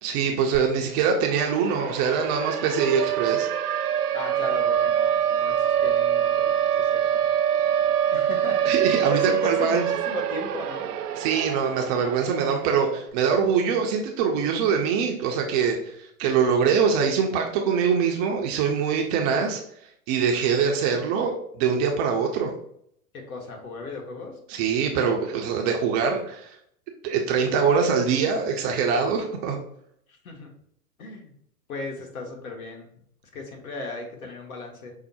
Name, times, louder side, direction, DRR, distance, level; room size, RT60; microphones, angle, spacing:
voice 1, 0.0-3.5 8.6-9.8 11.2-19.6 20.1-22.5 24.5-26.6 27.0-29.6, right 6 dB, 25° right, 2 dB, 0.5 m, -23 dB
Siren, 0.5-0.6 0.9-13.0, right 9 dB, 85° right, 0.5 m, -25 dB
voice 2, 4.1-5.5 5.8-7.2 8.1-10.9 23.1-24.4 30.1-30.5 31.0-31.3 31.7-32.9 33.3-34.9, left 3 dB, 65° left, 2 dB, 1.4 m, -36 dB
5.5 x 2.0 x 4.1 m, 0.69 s
hypercardioid pair, 110°, 45 cm